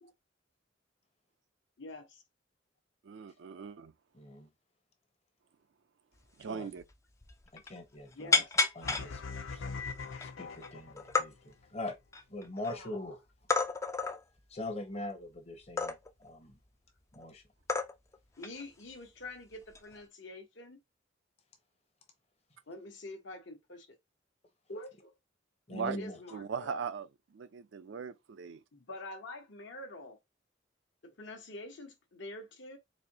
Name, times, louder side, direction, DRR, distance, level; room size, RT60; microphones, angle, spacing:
voice 1, 1.8-2.2 8.1-8.5 12.6-13.0 18.4-20.8 22.7-24.0 24.7-25.2 25.8-26.8 28.7-30.2 31.0-32.8, left 2 dB, 70° left, 1.0 m, -46 dB
voice 2, 3.0-3.9 6.4-6.8 25.7-26.0 26.3-27.1 27.3-28.6, right 6 dB, 70° right, 0.4 m, -39 dB
voice 3, 4.1-4.5 6.5-6.7 7.5-8.4 8.8-9.2 9.5-9.6 10.2-12.0 12.3-13.2 14.5-16.6 17.1-17.4 25.7-26.2, left 2 dB, 30° left, 0.8 m, -42 dB
sound 1, 6.4-6.5 6.8-6.9 7.2-7.8 8.3-9.1 9.7-9.8 10.1-10.7 11.0-11.3 11.9-12.7 13.5-14.2 15.8-16.2 17.1-17.3 17.7-18.2 18.4-18.6 19.7-20.0, left 4 dB, 15° left, 0.3 m, -30 dB
sound 2, 8.8-11.2, left 4 dB, 85° left, 0.6 m, -41 dB
4.2 x 2.6 x 2.8 m
head